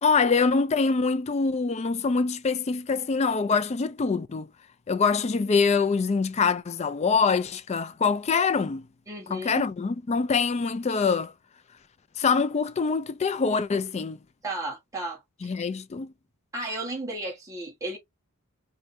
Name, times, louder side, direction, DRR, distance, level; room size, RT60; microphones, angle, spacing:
voice 1, 0.0-4.5 4.9-8.9 9.3-11.3 12.2-14.2 15.4-16.1, left 5 dB, 30° left, 0.4 m, -24 dB
voice 2, 9.1-9.7 14.4-15.5 16.5-18.0, right 2 dB, 15° right, 1.7 m, -34 dB
4.7 x 2.7 x 2.6 m
head